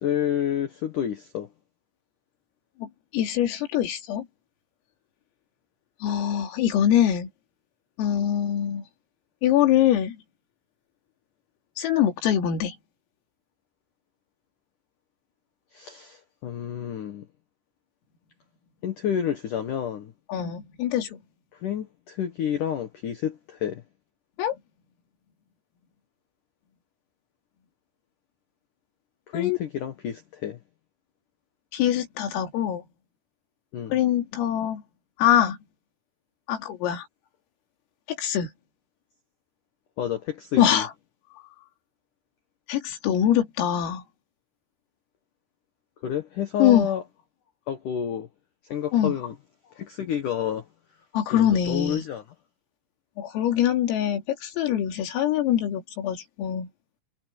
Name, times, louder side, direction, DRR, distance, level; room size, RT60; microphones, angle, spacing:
voice 1, 0.0-1.5 15.7-17.3 18.8-20.1 21.5-23.8 29.3-30.6 33.7-34.0 40.0-40.8 46.0-47.0 47.7-48.3 48.6-49.3 49.7-50.7 51.3-52.2, left 9 dB, 75° left, 1.9 m, -29 dB
voice 2, 2.8-4.3 6.0-7.3 8.0-8.9 9.4-10.2 11.8-12.8 20.3-21.2 24.4-24.6 29.3-29.6 31.7-32.8 33.9-34.8 35.2-35.6 36.5-37.1 38.2-38.5 40.6-40.9 42.7-44.0 46.6-46.9 48.9-49.1 51.1-52.0 53.2-56.7, left 10 dB, 90° left, 5.5 m, -23 dB
omnidirectional pair, 5.9 m